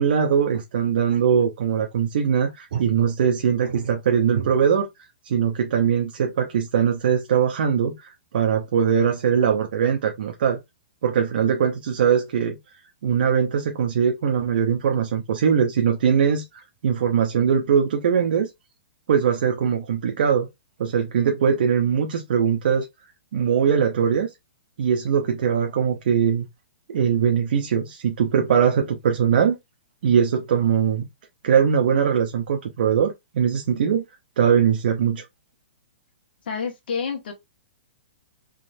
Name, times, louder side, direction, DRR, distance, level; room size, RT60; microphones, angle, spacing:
voice 1, 0.0-4.9 5.2-10.6 11.0-12.6 13.0-18.5 19.1-20.5 20.8-22.9 23.3-24.3 24.8-26.5 26.9-29.6 30.0-31.1 31.4-34.0 34.4-35.2, right 7 dB, 55° right, 0.8 m, -21 dB
voice 2, 36.4-37.3, left 6 dB, 60° left, 1.7 m, -28 dB
3.7 x 3.1 x 2.7 m
hypercardioid pair, 165°, 6 cm